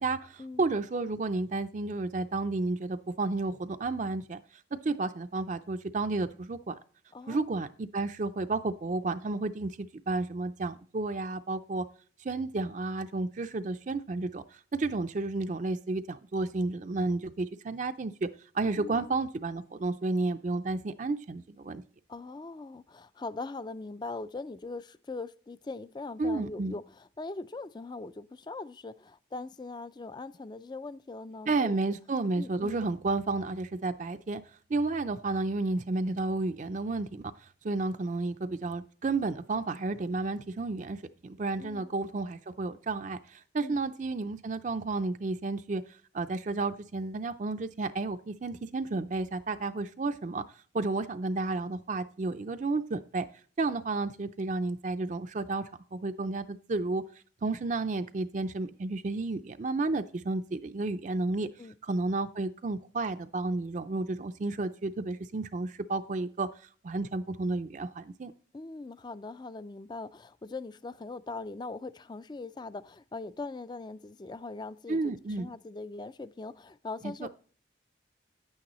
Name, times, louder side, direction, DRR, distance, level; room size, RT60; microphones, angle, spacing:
voice 1, 0.0-4.4 4.7-6.7 7.3-11.9 12.2-18.3 18.5-21.8 26.2-26.7 31.5-34.4 34.7-37.3 37.6-45.8 46.1-50.4 50.7-53.3 53.6-57.0 57.4-61.5 61.8-66.5 66.8-68.3 74.9-75.5 77.0-77.3, right 3 dB, 40° right, 0.4 m, -32 dB
voice 2, 7.1-7.6 18.8-19.1 22.1-26.9 27.2-31.8 32.4-32.9 41.6-41.9 43.6-43.8 61.6-61.7 68.5-77.3, left 3 dB, 25° left, 0.3 m, -41 dB
10.0 x 8.7 x 3.0 m
head